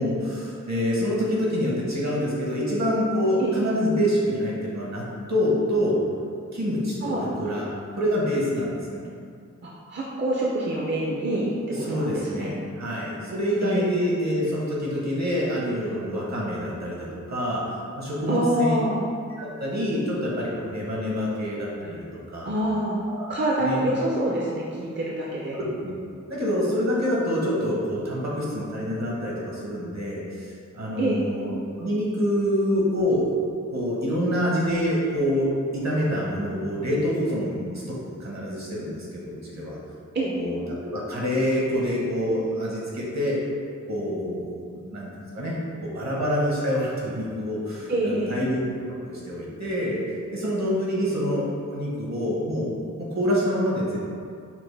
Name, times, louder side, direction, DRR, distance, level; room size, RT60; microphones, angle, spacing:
voice 1, 0.0-6.0 6.5-7.7 7.9-9.0 11.7-17.6 17.9-18.8 19.4-22.5 23.1-23.3 23.6-23.9 25.5-25.9 26.3-33.3 33.7-39.8 40.3-40.6 40.9-43.4 43.9-50.0 50.3-52.7 53.0-54.0, equal, 60° right, -5 dB, 1.1 m, -26 dB
voice 2, 9.6-11.6 11.9-12.5 13.6-13.9 18.3-19.0 22.5-23.0 23.3-25.6 31.0-31.2 40.1-40.4 47.9-48.4, right 1 dB, 35° right, -4 dB, 0.5 m, -26 dB
5.7 x 2.1 x 3.3 m, 2.3 s
wide cardioid pair, 75°, 30 cm